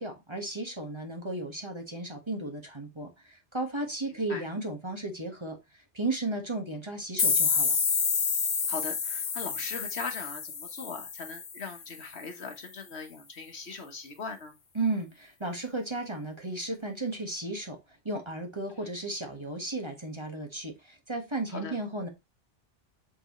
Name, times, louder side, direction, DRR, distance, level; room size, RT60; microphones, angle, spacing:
voice 1, 0.0-5.6 5.9-7.8 14.7-17.8 18.0-22.1, right 2 dB, 25° right, 1.4 m, -34 dB
voice 2, 4.1-4.5 8.7-14.5 18.8-18.9 21.5-21.8, left 4 dB, 65° left, 1.4 m, -40 dB
sound 1, 7.2-11.9, left 6 dB, 40° left, 0.6 m, -29 dB
7.8 x 4.2 x 3.0 m
omnidirectional pair, 1.2 m